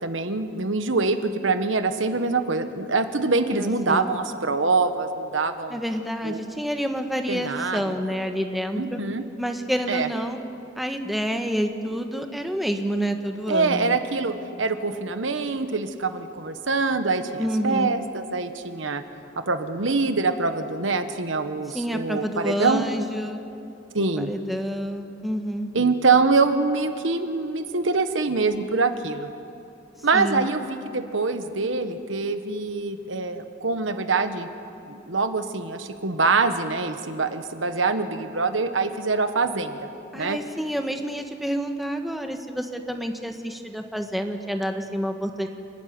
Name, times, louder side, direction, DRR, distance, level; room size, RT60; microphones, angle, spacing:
voice 1, 0.0-5.8 6.2-6.4 7.3-7.8 8.8-9.2 9.9-10.1 13.5-19.0 19.5-22.9 23.9-24.3 25.7-29.3 30.0-34.5 34.9-39.9 40.1-40.4, right 4 dB, 75° right, 9 dB, 1.3 m, -24 dB
voice 2, 3.5-4.1 5.7-9.0 9.4-10.4 10.8-14.0 17.4-17.9 21.7-23.4 24.0-25.7 30.1-30.5 40.1-45.5, equal, ahead, 4 dB, 1.4 m, -28 dB
29.0 x 12.0 x 9.6 m, 2.7 s
head